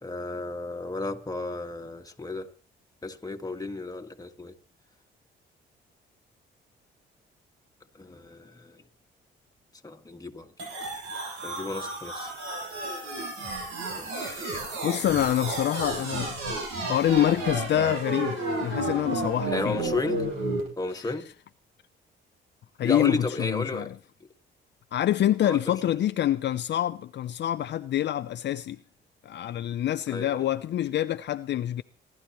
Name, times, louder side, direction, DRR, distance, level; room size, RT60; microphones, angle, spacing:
voice 1, 0.0-2.5 3.0-4.5 7.9-8.9 9.8-10.7 11.4-12.3 13.0-13.1 13.9-14.6 19.5-20.3 20.8-21.3 22.8-23.9 25.4-25.7 30.1-30.4, left 2 dB, 20° left, 1.7 m, -33 dB
sound 1, 10.6-20.6, right 2 dB, 80° right, 7.2 m, -32 dB
voice 2, 14.8-16.6 16.8-19.8 22.8-23.9 24.9-28.8 29.2-31.8, left 12 dB, 60° left, 0.6 m, -26 dB
27.0 x 12.0 x 3.0 m
cardioid pair, 90°, 20 cm